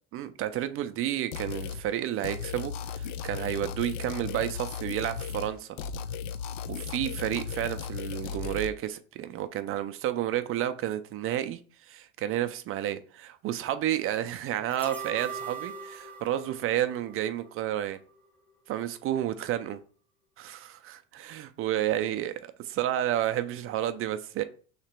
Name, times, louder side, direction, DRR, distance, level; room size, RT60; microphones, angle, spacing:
voice 1, 0.1-5.8 6.7-11.6 11.9-18.0 18.7-19.8 20.4-24.4, right 12 dB, 40° right, 0.4 m, -31 dB
sound 1, 1.3-1.8 2.2-5.5 5.8-8.7, left 6 dB, 80° left, 0.5 m, -36 dB
sound 2, 14.7-17.8 18.2-18.3, right 5 dB, 5° left, 0.8 m, -41 dB
3.2 x 2.9 x 4.4 m
supercardioid pair, 120°, 37 cm